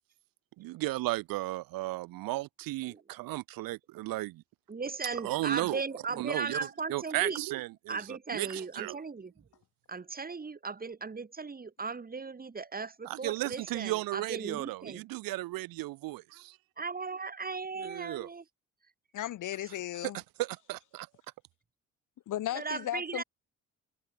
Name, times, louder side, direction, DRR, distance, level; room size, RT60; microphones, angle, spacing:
voice 1, 0.6-4.4 5.2-5.8 6.2-6.6 6.9-8.0 8.3-9.0 13.1-16.6 17.8-18.3 20.0-20.1 20.4-21.1, right 18 dB, 75° right, 2.1 m, -34 dB
voice 2, 4.7-7.4 7.9-9.3 9.9-15.0 16.8-18.4 19.6-19.7 22.5-23.2, right 4 dB, 25° right, 1.8 m, -37 dB
voice 3, 19.1-20.2 22.3-23.2, left 12 dB, 60° left, 1.2 m, -35 dB
hypercardioid pair, 55°, 35 cm